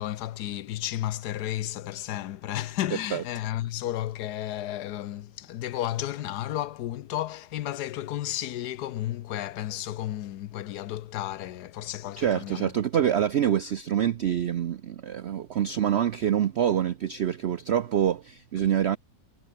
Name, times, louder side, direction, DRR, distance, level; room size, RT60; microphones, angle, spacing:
voice 1, 0.0-12.7, left 13 dB, 70° left, 1.2 m, -33 dB
voice 2, 12.2-19.0, right 9 dB, 75° right, 0.6 m, -26 dB
omnidirectional pair, 1.9 m